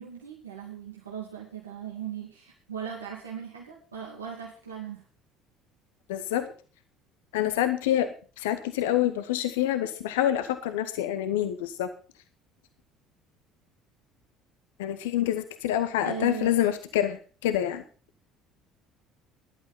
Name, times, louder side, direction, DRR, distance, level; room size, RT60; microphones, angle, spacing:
voice 1, 0.0-5.0 16.0-16.6, right 8 dB, 85° right, -3 dB, 2.5 m, -38 dB
voice 2, 6.1-6.4 7.3-8.1 8.4-11.9 14.8-17.8, left 12 dB, 75° left, 10 dB, 1.0 m, -27 dB
14.5 x 11.5 x 4.3 m, 0.38 s
figure-of-eight pair, 60°, 0 cm